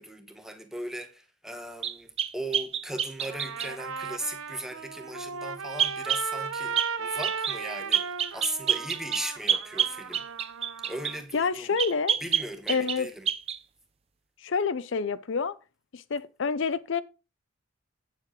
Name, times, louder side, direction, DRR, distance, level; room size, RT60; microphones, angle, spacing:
voice 1, 0.0-10.3 10.8-11.8 12.2-13.3, right 1 dB, ahead, 1.1 m, -38 dB
sound 1, 1.8-3.7 5.8-6.3 6.8-6.9 7.2-7.6 7.9-11.2 11.8-13.0 13.3-13.6, right 8 dB, 30° right, 0.4 m, -28 dB
Trumpet, 3.2-11.2, right 5 dB, 75° right, 0.7 m, -36 dB
voice 2, 11.3-12.2 12.7-13.1 14.4-15.6 15.9-17.0, left 5 dB, 60° left, 0.5 m, -28 dB
8.5 x 7.4 x 3.7 m
head